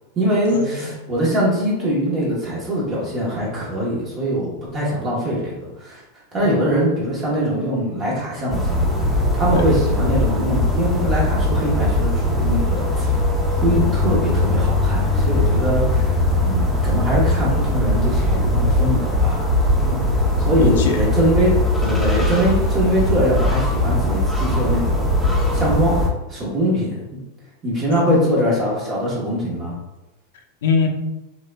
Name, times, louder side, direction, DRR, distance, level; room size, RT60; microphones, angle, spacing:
voice 1, 0.1-6.0 6.3-8.9 9.3-13.1 13.5-19.4 20.4-25.1 25.5-26.0 26.3-27.2 27.6-29.7, equal, 25° right, -6 dB, 1.2 m, -22 dB
voice 2, 6.4-6.9 9.5-9.7 19.8-20.1 20.6-21.0 27.9-28.3 30.6-30.9, left 4 dB, 75° left, 3 dB, 0.8 m, -23 dB
sound 1, 8.5-26.1, left 1 dB, ahead, 0.7 m, -20 dB
6.1 x 3.8 x 2.3 m, 1.0 s
supercardioid pair, 165°, 0 cm